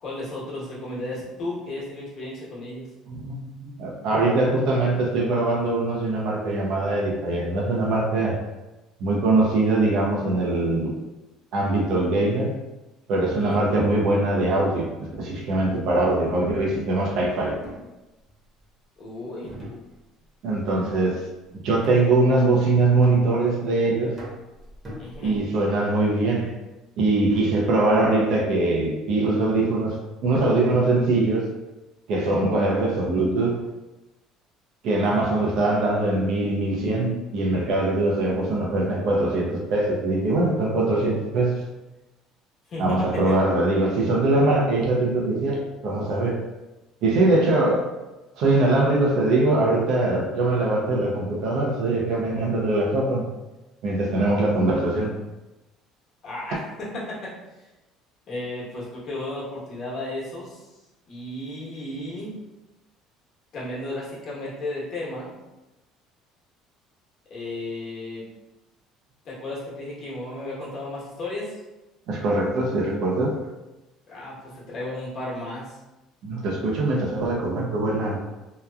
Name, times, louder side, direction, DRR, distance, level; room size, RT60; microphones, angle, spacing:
voice 1, 0.0-2.9 13.4-13.6 19.0-19.6 25.0-25.4 35.0-35.3 42.7-43.4 56.2-57.3 58.3-60.7 61.1-62.4 63.5-65.3 67.3-68.3 69.2-71.6 74.1-75.8, left 1 dB, 50° left, -6 dB, 1.1 m, -34 dB
voice 2, 3.1-8.4 9.0-10.9 11.5-12.6 13.1-17.6 20.4-21.2 21.5-24.2 25.2-26.6 27.0-30.0 30.2-31.5 32.1-33.6 34.8-41.7 42.8-46.4 47.0-47.9 48.3-53.3 53.8-55.2 72.1-73.4 76.2-78.2, right 2 dB, 65° right, -1 dB, 0.6 m, -22 dB
sound 1, 16.0-16.3 17.6-18.7 19.4-20.3 20.6-21.0 21.8-22.3 23.0-23.7 24.2-25.6, equal, 25° right, 1.0 m, -42 dB
2.9 x 2.3 x 2.3 m, 1.0 s
cardioid pair, 120°, 0 cm